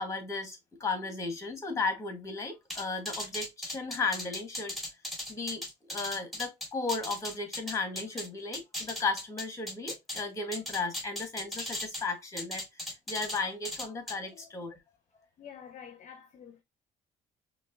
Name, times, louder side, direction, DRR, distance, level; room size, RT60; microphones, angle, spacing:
voice 1, 0.0-4.8 5.3-5.6 5.9-14.8, left 4 dB, 15° left, 1.1 m, -35 dB
sound 1, 2.7-8.3 8.5-10.2 10.5-12.0 12.4-13.4 13.6-14.1, left 1 dB, ahead, 1.5 m, -37 dB
voice 2, 15.4-16.6, left 8 dB, 45° left, 0.5 m, -49 dB
5.1 x 2.3 x 2.5 m
cardioid pair, 110°, 17 cm